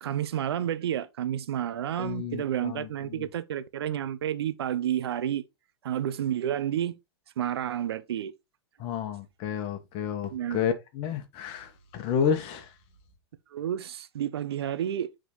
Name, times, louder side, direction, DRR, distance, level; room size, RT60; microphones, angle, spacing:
voice 1, 0.0-5.4 5.8-7.0 7.4-8.3 10.3-10.6 13.5-15.1, right 10 dB, 75° right, 0.7 m, -30 dB
voice 2, 2.0-3.2 8.8-12.6, left 7 dB, 45° left, 1.4 m, -31 dB
8.1 x 3.8 x 3.1 m
hypercardioid pair, 115°, 13 cm